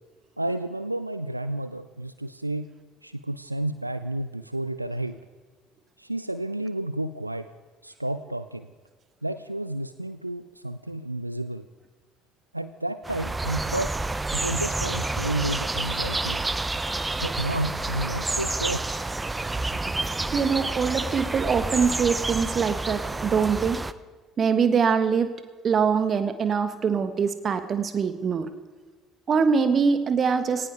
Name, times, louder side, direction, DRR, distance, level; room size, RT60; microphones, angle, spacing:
voice 1, 0.4-2.7 3.0-5.2 6.0-7.5 7.8-8.7 9.2-11.6 12.5-14.0 14.3-16.4 17.2-18.8, right 1 dB, 90° right, 12 dB, 0.4 m, -31 dB
sound 1, 13.0-23.9, right 2 dB, 15° right, 0.7 m, -29 dB
voice 2, 20.3-23.8 24.4-25.3 25.6-28.5 29.3-30.7, right 6 dB, 40° right, 10 dB, 1.4 m, -23 dB
18.5 x 17.5 x 3.4 m, 1.4 s
figure-of-eight pair, 55°, 0 cm